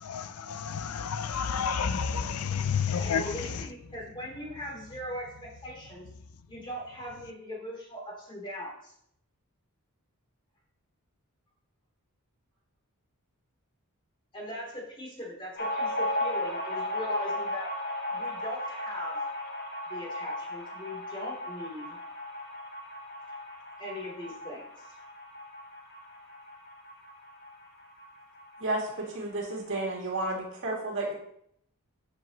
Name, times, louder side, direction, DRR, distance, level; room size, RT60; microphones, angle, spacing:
voice 1, 0.0-3.3, left 6 dB, 75° left, 12 dB, 0.5 m, -30 dB
voice 2, 3.0-6.1 6.5-8.9 14.3-17.7 18.1-19.2 19.9-22.0 23.8-24.9, equal, 25° left, -3 dB, 3.3 m, -40 dB
sound 1, 15.6-28.7 29.0-29.1 29.3-30.1, left 1 dB, 45° left, 1.7 m, -36 dB
voice 3, 28.6-31.1, right 2 dB, 60° right, -1 dB, 2.5 m, -32 dB
12.0 x 7.6 x 3.0 m, 0.72 s
head